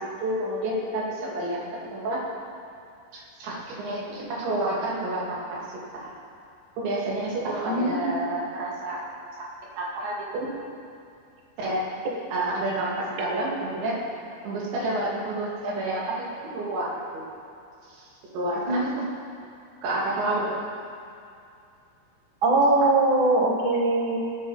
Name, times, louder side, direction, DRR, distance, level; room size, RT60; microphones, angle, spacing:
voice 1, 0.2-2.2 3.1-5.6 6.0-6.1 6.8-9.0 9.8-10.5 11.6-11.9 12.3-14.0 14.4-16.3 16.5-16.9 17.9-18.0 18.3-19.0 19.8-20.5, right 1 dB, 80° right, -5 dB, 4.6 m, -29 dB
voice 2, 7.7-8.1 18.7-18.8 22.4-24.2, right 2 dB, 65° right, -1 dB, 1.2 m, -21 dB
20.0 x 9.5 x 4.1 m, 2.5 s
omnidirectional pair, 5.0 m